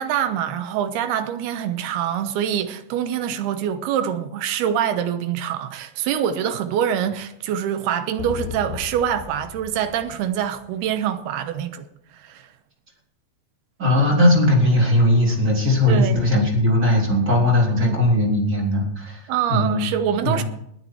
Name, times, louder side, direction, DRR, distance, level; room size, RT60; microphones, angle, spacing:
voice 1, 0.0-11.9 12.2-12.4 15.9-16.2 17.8-18.0 19.3-20.4, right 9 dB, 75° right, 2.7 m, -25 dB
sound 1, 8.2-10.9, left 11 dB, 85° left, 3.0 m, -36 dB
voice 2, 13.8-19.9 20.2-20.4, left 1 dB, 20° right, 3.4 m, -19 dB
20.5 x 9.4 x 4.7 m
omnidirectional pair, 5.1 m